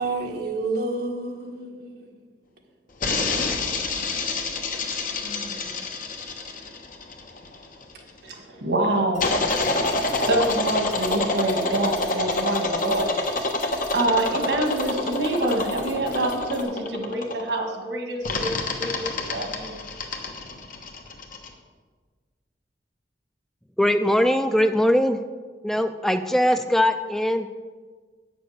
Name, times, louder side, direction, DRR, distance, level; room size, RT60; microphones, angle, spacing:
voice 1, 0.0-2.1 5.2-5.7, right 3 dB, 60° right, 1.8 m, -30 dB
sound 1, 3.0-7.9 9.2-17.6 18.2-21.5, left 2 dB, 50° left, 1.1 m, -27 dB
voice 2, 8.2-9.3 10.2-13.1 13.9-19.8, right 1 dB, 90° right, 1.8 m, -26 dB
sound 2, 9.1-16.6, left 2 dB, 70° left, 1.8 m, -45 dB
voice 3, 23.8-25.2 25.6-27.5, left 1 dB, ahead, 0.3 m, -21 dB
8.9 x 6.8 x 6.5 m
head